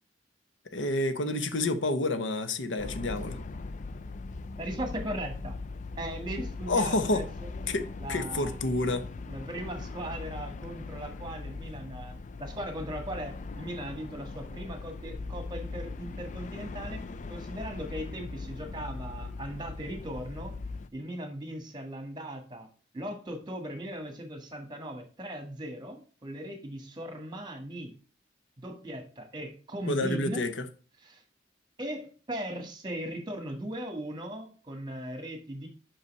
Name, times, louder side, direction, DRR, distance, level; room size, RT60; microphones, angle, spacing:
voice 1, 0.7-3.4 6.7-7.3 7.7-9.1 29.9-30.7, left 2 dB, 90° left, 0.9 m, -29 dB
sound 1, 2.8-20.9, left 3 dB, 40° left, 0.4 m, -40 dB
voice 2, 4.6-5.6 6.0-7.2 8.0-8.5 9.3-17.0 17.3-20.5 20.9-22.7 22.9-27.9 28.6-30.4 31.0-31.2 31.8-35.7, right 1 dB, 25° right, 1.6 m, -38 dB
5.7 x 5.5 x 5.3 m
head